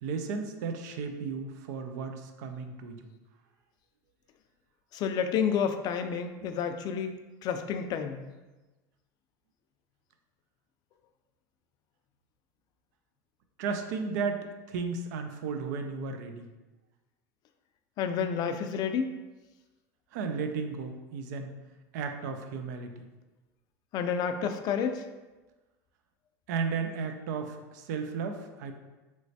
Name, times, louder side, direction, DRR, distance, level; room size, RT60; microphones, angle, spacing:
voice 1, 0.0-3.1 6.4-6.5 13.6-16.5 20.1-21.6 21.9-23.1 26.5-28.7, right 5 dB, 75° right, 6 dB, 0.4 m, -34 dB
voice 2, 4.9-7.1 7.4-8.3 18.0-19.1 23.9-25.1, left 7 dB, 45° left, 8 dB, 0.3 m, -30 dB
3.1 x 3.1 x 2.7 m, 1.2 s
supercardioid pair, 105°, 9 cm